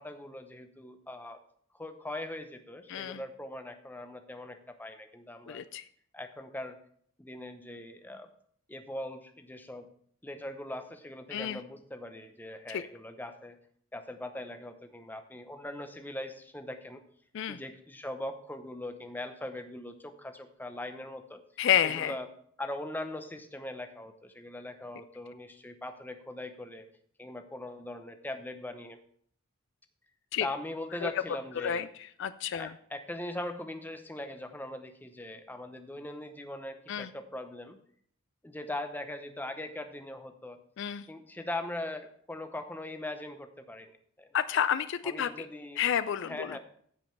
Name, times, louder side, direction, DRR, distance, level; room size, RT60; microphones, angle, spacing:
voice 1, 0.0-1.4 1.7-5.6 6.1-6.8 7.2-8.3 8.7-9.9 10.2-13.6 13.9-17.0 17.5-21.4 21.8-22.3 22.6-26.8 27.2-29.0 30.4-31.9 32.5-37.8 38.4-40.6 41.1-43.9 44.2-44.3 45.0-45.8 46.2-46.6, left 1 dB, 10° left, 7 dB, 0.7 m, -40 dB
voice 2, 2.9-3.2 5.5-5.8 11.3-11.6 12.7-12.8 17.3-17.6 21.6-22.1 30.3-30.5 31.0-31.1 31.6-31.9 32.2-32.7 36.9-37.1 40.8-41.1 44.3-45.5 45.8-46.6, left 9 dB, 55° left, 14 dB, 0.3 m, -30 dB
15.0 x 5.2 x 4.5 m, 0.62 s
head